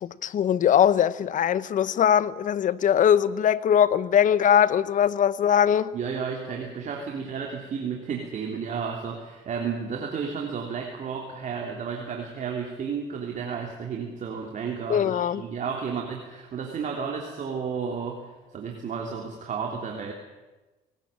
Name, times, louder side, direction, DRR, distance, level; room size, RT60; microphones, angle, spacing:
voice 1, 0.0-5.9 14.9-15.4, left 9 dB, 50° left, 0.9 m, -21 dB
voice 2, 5.9-20.1, right 6 dB, 50° right, 3.1 m, -32 dB
20.0 x 18.5 x 8.8 m
cardioid pair, 110°, 17 cm